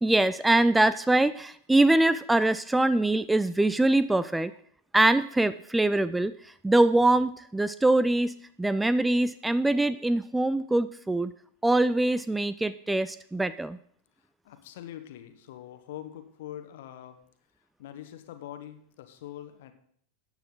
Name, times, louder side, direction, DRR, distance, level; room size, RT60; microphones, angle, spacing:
voice 1, 0.0-4.5 4.9-8.3 8.6-11.3 11.6-13.8, right 2 dB, 5° right, 15 dB, 0.4 m, -23 dB
voice 2, 14.2-17.2 17.8-19.7, left 12 dB, 55° left, 9 dB, 1.3 m, -43 dB
14.0 x 8.9 x 3.8 m, 0.63 s
figure-of-eight pair, 90°, 0 cm